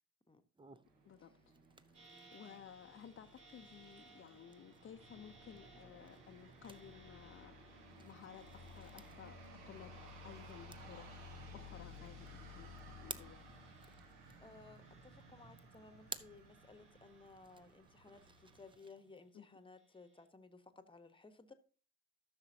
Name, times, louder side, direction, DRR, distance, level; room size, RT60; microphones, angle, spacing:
sound 1, 0.5-19.3, right 3 dB, 15° right, 0.6 m, -58 dB
sound 2, 0.9-18.7, left 1 dB, 70° right, 1.5 m, -57 dB
voice 1, 1.0-1.5 1.9-2.0 2.3-11.1 11.5-13.4 19.3-19.6, left 9 dB, 35° left, 5 dB, 0.7 m, -56 dB
sound 3, 1.9-14.5 14.8-16.0 16.4-17.7 18.1-19.1 19.7-20.2, right 3 dB, 40° right, 5.8 m, -66 dB
voice 2, 14.4-21.5, left 3 dB, 15° left, 11 dB, 1.1 m, -58 dB
14.0 x 6.7 x 2.8 m, 0.38 s
figure-of-eight pair, 45°, 35 cm